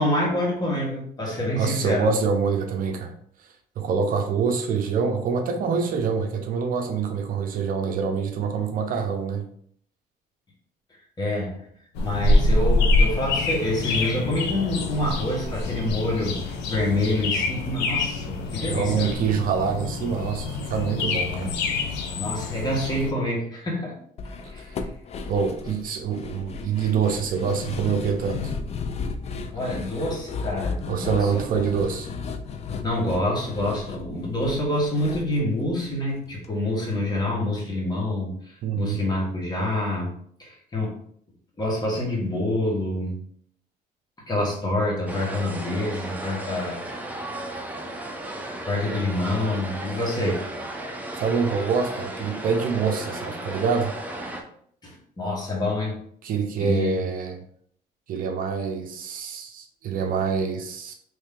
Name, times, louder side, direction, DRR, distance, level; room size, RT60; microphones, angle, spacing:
voice 1, 0.0-2.1 11.2-11.6 12.0-19.1 21.3-21.5 22.1-23.9 24.5-24.9 29.5-31.4 32.8-40.1 40.4-41.0 41.6-43.2 44.3-46.8 48.6-50.4 54.8-56.0 56.6-57.0, left 1 dB, 25° left, 1.4 m, -27 dB
voice 2, 1.6-3.1 3.8-9.5 18.6-21.5 24.6-24.7 25.3-28.5 30.9-32.1 38.6-39.0 51.2-53.9 56.2-57.4 58.1-60.9, right 6 dB, 55° right, 0.5 m, -25 dB
sound 1, 11.9-23.1, left 2 dB, 85° left, 0.6 m, -25 dB
sound 2, 24.2-36.5 36.7-36.8 37.2-37.3, left 5 dB, 40° left, 0.4 m, -34 dB
sound 3, 45.1-54.4, right 1 dB, 10° right, 0.5 m, -35 dB
3.1 x 2.7 x 3.6 m
cardioid pair, 110°, 17 cm